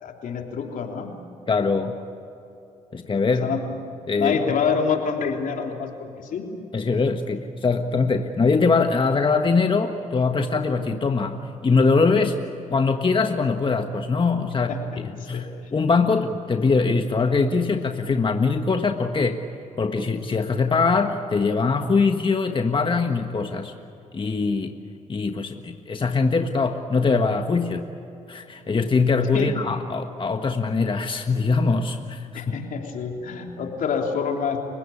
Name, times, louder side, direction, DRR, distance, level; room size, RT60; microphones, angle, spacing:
voice 1, 0.0-1.2 3.4-3.6 4.2-6.5 14.7-14.8 15.3-15.4 29.3-29.5 32.3-34.6, left 6 dB, 75° left, 2 dB, 3.3 m, -26 dB
voice 2, 1.5-2.0 2.9-3.5 4.1-4.6 6.7-12.4 12.7-19.4 19.8-23.7 24.1-24.7 25.1-27.9 28.3-32.5, left 4 dB, 35° left, 5 dB, 1.5 m, -22 dB
30.0 x 17.0 x 8.6 m, 2.8 s
supercardioid pair, 60°, 14 cm